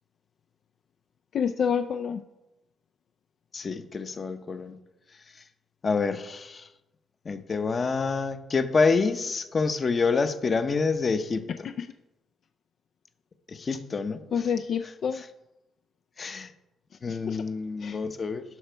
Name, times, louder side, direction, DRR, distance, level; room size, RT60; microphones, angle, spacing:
voice 1, 1.3-2.2 11.8-11.9 14.3-15.2 17.1-17.4 17.8-18.0, left 7 dB, 60° left, 7 dB, 0.3 m, -28 dB
voice 2, 3.5-4.8 5.8-6.6 7.3-11.5 13.5-14.2 16.2-16.5 17.0-18.4, left 4 dB, 35° left, 10 dB, 0.8 m, -27 dB
12.0 x 5.6 x 4.5 m, 0.99 s
cardioid pair, 90°, 0 cm